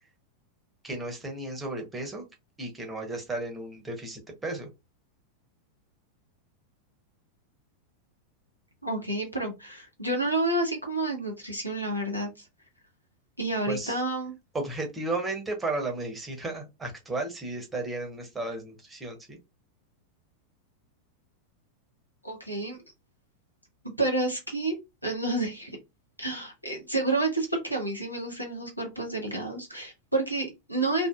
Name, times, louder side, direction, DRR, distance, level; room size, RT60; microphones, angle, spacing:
voice 1, 0.8-2.2 2.6-4.7 13.7-14.0 14.5-19.4, right 2 dB, 10° right, 2 dB, 0.9 m, -34 dB
voice 2, 8.8-12.3 13.4-14.3 22.2-22.8 24.0-25.8 26.2-31.1, right 2 dB, 90° left, 1 dB, 0.9 m, -29 dB
2.6 x 2.4 x 2.3 m, 0.23 s
figure-of-eight pair, 90°, 0 cm